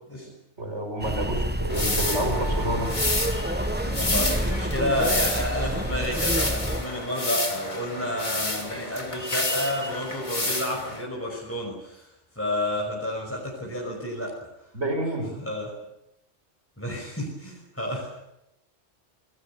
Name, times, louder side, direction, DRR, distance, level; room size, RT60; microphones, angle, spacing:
voice 1, 0.6-2.9 14.7-15.3, right 1 dB, 80° right, 4 dB, 5.8 m, -29 dB
sound 1, 1.0-6.8, right 1 dB, 10° right, 1.0 m, -28 dB
sound 2, 1.7-11.0, left 2 dB, 40° left, 3.0 m, -30 dB
voice 2, 3.9-14.5 15.4-15.7 16.8-18.1, left 1 dB, 10° left, -2 dB, 5.8 m, -30 dB
28.0 x 20.5 x 6.9 m, 0.84 s
omnidirectional pair, 1.2 m